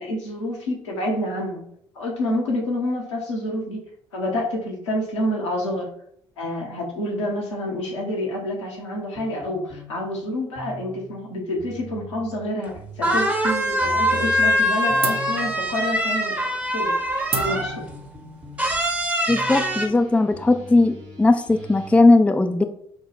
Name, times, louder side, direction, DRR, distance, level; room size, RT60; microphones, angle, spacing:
voice 1, 0.0-1.6 1.9-3.8 4.1-5.9 6.4-16.3 16.7-17.0 17.3-17.8, left 1 dB, 80° left, -2 dB, 1.0 m, -28 dB
sound 1, 9.1-22.0, left 1 dB, 60° right, 1.4 m, -42 dB
sound 2, 12.7-12.8 13.0-17.9 18.6-19.9, equal, 10° right, 0.8 m, -23 dB
sound 3, 13.1-13.9 14.2-14.7 15.0-20.2, right 4 dB, 40° right, 0.7 m, -35 dB
voice 2, 19.3-22.6, left 2 dB, 10° left, 7 dB, 0.4 m, -18 dB
6.1 x 2.2 x 3.3 m, 0.68 s
figure-of-eight pair, 45°, 15 cm